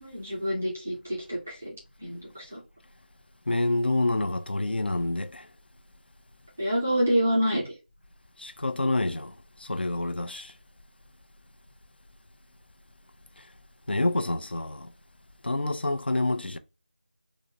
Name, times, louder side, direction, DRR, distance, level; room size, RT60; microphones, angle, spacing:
voice 1, 0.0-1.7 2.0-2.6 6.6-7.6, equal, 10° right, 0.3 m, -27 dB
voice 2, 3.5-5.5 8.4-10.5 13.4-13.5 13.9-14.9 15.4-16.6, left 2 dB, 70° left, 0.5 m, -28 dB
3.7 x 2.0 x 2.7 m
figure-of-eight pair, 175°, 6 cm